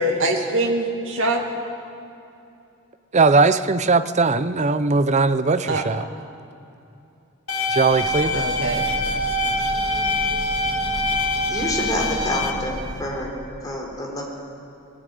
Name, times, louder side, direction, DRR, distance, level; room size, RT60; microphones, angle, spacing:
voice 1, 0.0-1.4 5.7-5.8 8.3-8.9, right 1 dB, 65° right, 1 dB, 2.5 m, -23 dB
voice 2, 3.1-6.1 7.7-8.5, right 3 dB, 35° right, 13 dB, 0.6 m, -19 dB
sound 1, 7.5-12.5, left 1 dB, 85° left, 2.0 m, -24 dB
Train, 7.6-13.4, equal, 80° right, 3.0 m, -35 dB
voice 3, 11.5-12.7 13.0-13.3 13.6-14.2, left 1 dB, 20° left, -1 dB, 3.7 m, -27 dB
19.5 x 15.0 x 9.2 m, 2.7 s
head